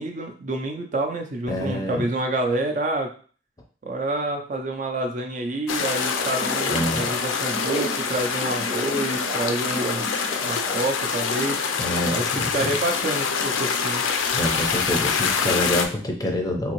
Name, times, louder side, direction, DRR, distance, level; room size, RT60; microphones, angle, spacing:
voice 1, 0.0-3.1 3.8-10.1 10.4-11.6 12.1-14.0, right 2 dB, 40° right, 4 dB, 0.4 m, -28 dB
voice 2, 1.5-2.1 6.7-7.1 10.4-10.6 11.8-12.7 14.3-16.7, left 1 dB, 20° left, 2 dB, 0.5 m, -27 dB
sound 1, 5.7-15.9, left 5 dB, 75° left, 0.5 m, -25 dB
sound 2, 5.8-10.8, right 1 dB, 25° right, 0.8 m, -34 dB
3.5 x 2.7 x 3.0 m, 0.41 s
head